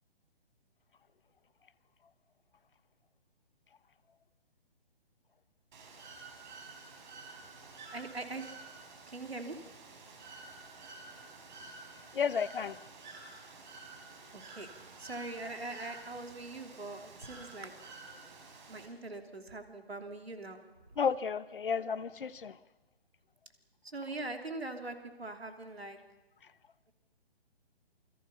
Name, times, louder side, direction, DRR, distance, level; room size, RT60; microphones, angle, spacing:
Bird / Water, 5.7-18.9, right 3 dB, 50° right, 4.8 m, -51 dB
voice 1, 7.9-8.5 9.1-9.6 14.3-14.7 15.0-17.7 18.7-20.6 23.8-26.0, right 2 dB, 80° right, 5 dB, 3.2 m, -42 dB
voice 2, 12.1-12.8 21.0-22.5, left 6 dB, 60° left, 17 dB, 1.1 m, -32 dB
28.0 x 22.0 x 5.7 m, 1.2 s
figure-of-eight pair, 135°, 31 cm